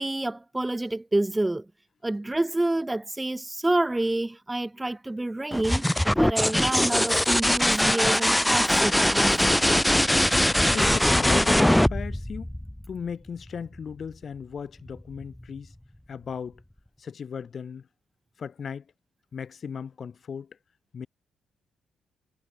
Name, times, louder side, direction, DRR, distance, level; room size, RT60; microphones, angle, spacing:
voice 1, 0.0-1.7 2.0-9.5, right 2 dB, 10° right, 7.1 m, -28 dB
sound 1, 5.5-13.1 14.9-15.4, left 1 dB, 5° left, 1.4 m, -22 dB
voice 2, 10.6-12.5 12.9-15.7 16.1-16.6 17.0-17.8 18.4-18.8 19.3-20.6 20.9-21.1, left 6 dB, 45° left, 3.9 m, -36 dB
cardioid pair, 95°, 0 cm